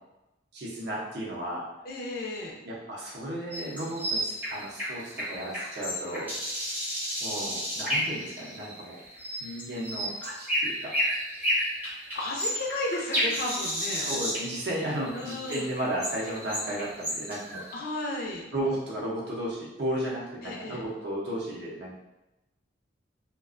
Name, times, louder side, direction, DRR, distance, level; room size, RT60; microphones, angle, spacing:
voice 1, 0.5-1.7 2.7-6.3 7.2-9.0 9.4-10.9 11.4-11.5 14.0-17.6 18.5-22.0, right 1 dB, 60° right, -5 dB, 0.6 m, -34 dB
voice 2, 1.8-2.5 12.1-14.1 15.1-15.7 17.7-18.5 20.4-20.8, left 2 dB, 50° left, -1 dB, 0.4 m, -33 dB
sound 1, 3.5-17.7, equal, 10° right, 0.5 m, -32 dB
2.4 x 2.2 x 2.4 m, 0.98 s
head